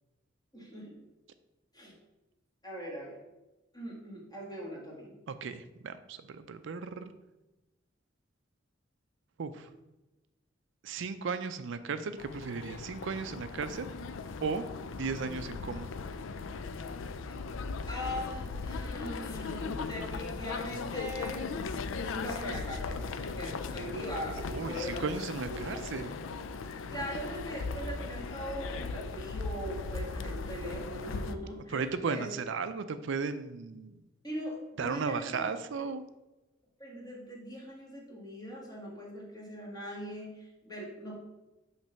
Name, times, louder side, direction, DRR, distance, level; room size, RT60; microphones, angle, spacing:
voice 1, 0.5-1.0 1.7-1.9 2.6-3.2 3.7-5.1 17.3-17.4 17.9-21.5 22.0-25.1 25.5-25.9 26.9-32.3 34.2-35.4 36.8-41.1, equal, 20° left, -3 dB, 1.6 m, -41 dB
voice 2, 5.3-7.1 9.4-9.7 10.8-13.9 14.4-14.6 15.0-15.9 24.5-26.2 31.7-33.9 34.8-36.0, right 5 dB, 70° right, 11 dB, 0.4 m, -35 dB
sound 1, 12.2-31.3, left 4 dB, 75° left, 0.4 m, -38 dB
6.0 x 3.3 x 5.7 m, 1.0 s
head